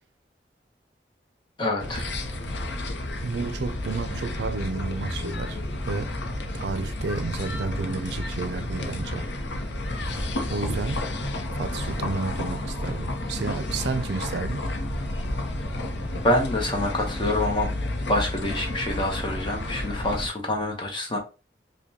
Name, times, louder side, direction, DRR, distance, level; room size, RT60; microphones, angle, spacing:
voice 1, 1.6-2.1 16.2-17.7 18.1-21.2, left 1 dB, 25° left, 0.9 m, -26 dB
sound 1, 1.8-20.3, left 1 dB, 85° left, 0.7 m, -31 dB
voice 2, 3.2-6.1 6.5-9.3 10.5-11.0 11.5-14.6, right 4 dB, 75° right, 0.4 m, -31 dB
5.1 x 2.2 x 2.8 m
head